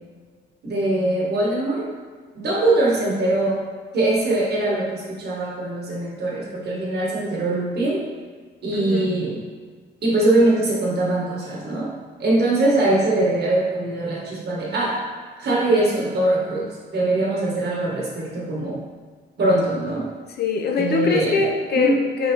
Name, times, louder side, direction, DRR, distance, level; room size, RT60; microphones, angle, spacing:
voice 1, 0.6-1.8 2.3-3.6 3.9-8.0 8.6-9.4 10.0-11.9 12.2-15.0 15.4-18.8 19.4-20.1 20.8-21.4 21.7-22.0, right 2 dB, 55° right, -4 dB, 1.5 m, -22 dB
voice 2, 8.7-9.2 20.4-22.3, left 5 dB, 55° left, 2 dB, 0.6 m, -22 dB
5.1 x 3.4 x 3.0 m, 1.5 s
cardioid pair, 90°, 20 cm